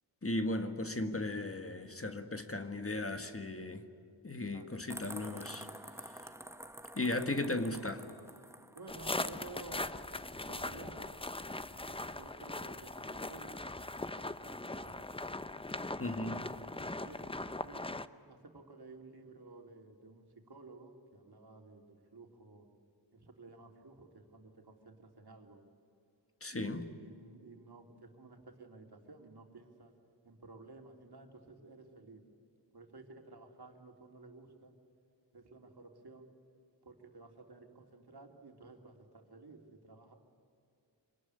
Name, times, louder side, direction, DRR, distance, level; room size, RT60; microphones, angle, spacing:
voice 1, 0.2-3.8 4.2-5.7 7.0-8.0 16.0-16.5 26.4-26.9, left 2 dB, 30° left, 1.7 m, -36 dB
sound 1, 4.9-9.3, right 1 dB, 5° right, 1.2 m, -49 dB
voice 2, 8.7-11.1 11.9-13.6 14.2-15.1 16.0-17.9 18.3-22.7 23.1-25.6 26.5-29.9 30.2-32.2 32.7-34.7 35.3-36.3 36.8-40.1, right 3 dB, 60° right, 3.3 m, -54 dB
sound 2, 8.9-18.1, left 2 dB, 10° left, 0.7 m, -40 dB
26.0 x 19.5 x 9.8 m
wide cardioid pair, 80°, 44 cm